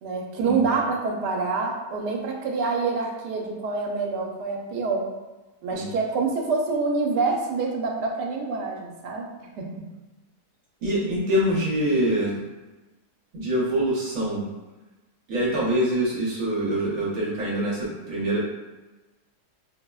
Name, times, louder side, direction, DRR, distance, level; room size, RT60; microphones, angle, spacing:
voice 1, 0.0-5.1 5.6-9.2 9.6-9.9, right 4 dB, 85° right, 0 dB, 1.2 m, -26 dB
voice 2, 10.8-12.4 13.3-14.4 15.3-18.4, right 1 dB, 60° right, -5 dB, 1.1 m, -25 dB
4.9 x 2.0 x 2.2 m, 1.1 s
omnidirectional pair, 1.7 m